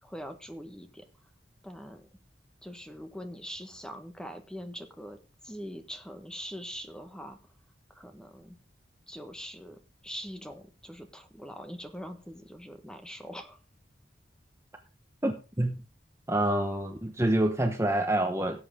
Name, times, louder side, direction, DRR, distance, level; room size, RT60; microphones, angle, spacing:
voice 1, 0.0-1.0 1.6-2.1 2.6-5.2 5.4-7.4 7.9-8.6 9.1-13.6, equal, 5° left, 7 dB, 1.4 m, -43 dB
voice 2, 15.2-15.8 16.3-18.6, right 1 dB, 15° right, 5 dB, 1.1 m, -27 dB
16.5 x 7.9 x 3.7 m, 0.31 s
head